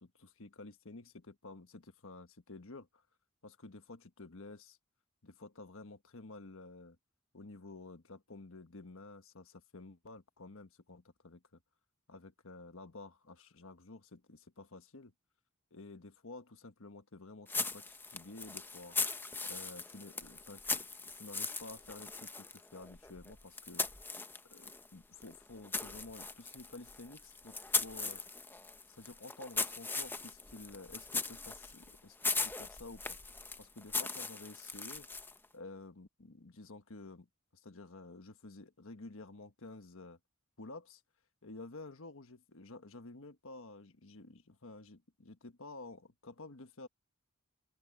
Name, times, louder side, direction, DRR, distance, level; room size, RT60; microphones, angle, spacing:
voice 1, 0.0-3.0 3.4-4.8 5.2-7.0 7.3-11.4 12.1-15.1 15.7-19.0 19.4-20.9 21.1-23.9 24.5-28.2 29.0-33.2 33.6-35.1 35.5-37.3 37.5-40.2 40.6-41.0 41.4-46.9, left 2 dB, 65° left, 1.4 m, -51 dB
sound 1, 17.5-24.9 25.2-35.5, left 3 dB, 10° left, 0.8 m, -39 dB
open air
head